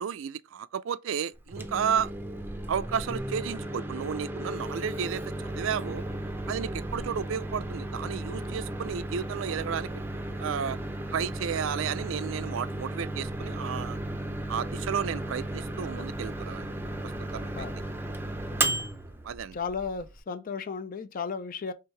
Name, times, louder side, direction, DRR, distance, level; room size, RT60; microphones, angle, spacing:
voice 1, 0.0-2.1 2.7-6.0 6.5-9.9 10.4-10.8 11.1-14.0 14.5-16.7 17.3-17.7 19.2-19.6, right 7 dB, 70° right, 0.4 m, -32 dB
Microwave oven, 1.4-20.2, right 1 dB, 10° right, 0.5 m, -35 dB
voice 2, 19.5-21.7, left 5 dB, 45° left, 0.4 m, -35 dB
4.7 x 3.5 x 3.2 m
head